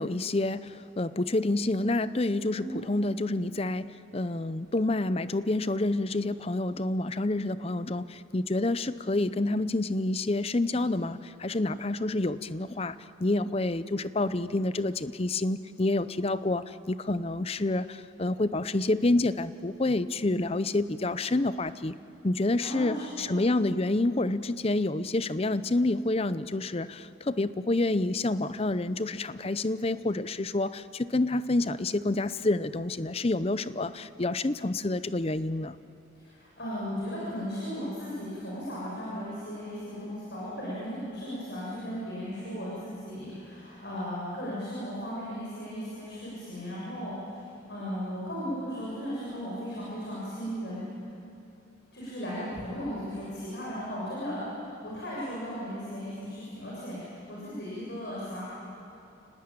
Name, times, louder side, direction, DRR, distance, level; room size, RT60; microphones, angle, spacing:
voice 1, 0.0-21.9 22.2-35.7, left 2 dB, 30° left, 14 dB, 0.6 m, -28 dB
voice 2, 2.5-2.8 22.6-23.3 36.1-50.8 51.9-58.4, equal, 55° left, -7 dB, 7.1 m, -36 dB
29.5 x 19.5 x 9.0 m, 2.8 s
head